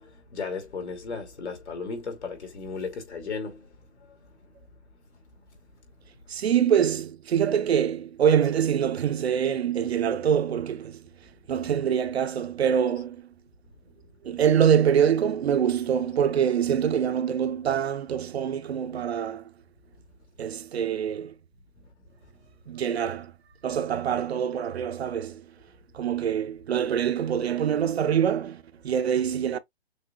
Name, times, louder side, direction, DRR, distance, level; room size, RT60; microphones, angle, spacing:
voice 1, 0.0-3.7, left 4 dB, 90° left, 2.8 m, -35 dB
voice 2, 6.3-11.0 11.5-13.2 14.2-19.4 20.4-21.3 22.7-23.3 23.6-25.4 25.9-29.6, right 8 dB, 70° right, 0.7 m, -25 dB
6.3 x 2.7 x 2.4 m
hypercardioid pair, 170°, 33 cm